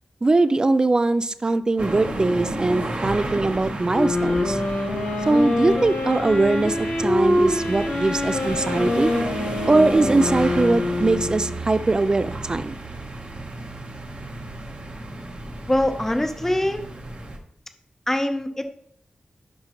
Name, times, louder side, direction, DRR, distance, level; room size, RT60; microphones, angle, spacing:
voice 1, 0.2-4.6 5.3-9.1 9.7-12.7, right 2 dB, 30° right, 13 dB, 0.4 m, -21 dB
sound 1, 1.8-17.4, right 2 dB, 50° right, 1.1 m, -32 dB
sound 2, 3.9-11.6, left 1 dB, 70° left, 2.0 m, -25 dB
voice 2, 15.7-16.8 18.1-18.7, left 1 dB, 15° left, 7 dB, 0.7 m, -23 dB
11.5 x 5.1 x 3.0 m, 0.66 s
wide cardioid pair, 130°, 3 cm